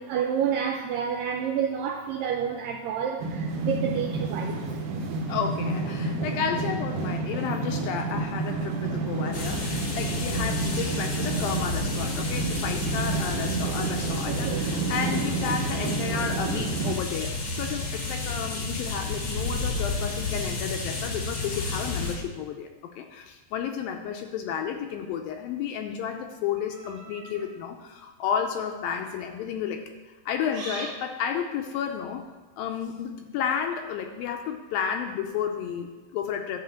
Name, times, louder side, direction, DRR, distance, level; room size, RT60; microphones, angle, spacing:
voice 1, 0.0-4.6 14.3-14.7, right 8 dB, 90° right, 2 dB, 1.9 m, -29 dB
sound 1, 3.2-16.9, right 3 dB, 70° right, 2.1 m, -30 dB
voice 2, 5.3-29.8 30.3-32.2 32.6-36.6, left 8 dB, 75° left, 4 dB, 2.2 m, -32 dB
sound 2, 9.3-22.1, left 3 dB, 55° left, 1.2 m, -31 dB
sound 3, 26.5-27.5 28.3-28.6 30.5-31.0, right 3 dB, 50° right, 2.0 m, -40 dB
11.5 x 4.4 x 7.6 m, 1.2 s
omnidirectional pair, 4.7 m